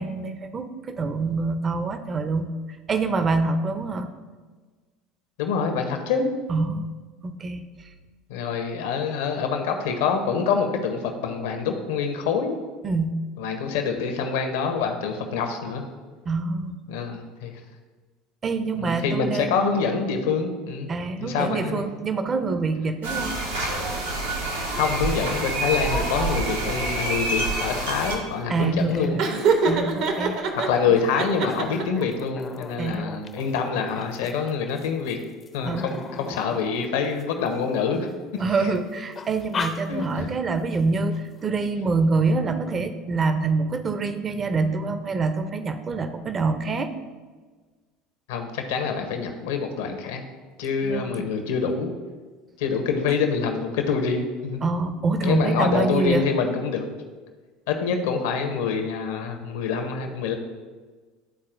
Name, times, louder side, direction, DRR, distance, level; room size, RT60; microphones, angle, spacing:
voice 1, 0.0-2.5 2.9-4.1 6.5-7.0 7.2-7.6 12.8-13.1 16.3-16.8 18.4-19.6 20.9-23.4 28.5-30.4 30.9-31.0 32.8-33.1 35.6-35.9 38.4-46.9 50.8-51.3 54.6-56.3, right 3 dB, 30° right, 9 dB, 0.6 m, -26 dB
voice 2, 5.4-6.3 8.3-12.5 13.4-15.8 16.9-17.6 18.8-20.9 21.2-21.9 24.8-29.2 30.5-35.2 35.5-38.1 38.6-38.8 39.9-40.3 48.3-50.2 50.6-51.9 52.6-54.6 55.2-56.9 57.7-60.3, left 5 dB, 70° left, 5 dB, 0.8 m, -26 dB
sound 1, 23.0-28.2, right 2 dB, 90° right, 1.2 m, -27 dB
sound 2, 23.3-23.4 23.7-26.2 26.6-38.0 38.4-38.8 39.1-40.4 40.7-40.8 41.1-41.5, left 5 dB, 35° left, 0.5 m, -39 dB
Laughter, 29.2-30.7 31.1-32.0, right 4 dB, 60° right, 0.8 m, -23 dB
11.5 x 4.1 x 2.6 m, 1.4 s
hypercardioid pair, 70°, 0 cm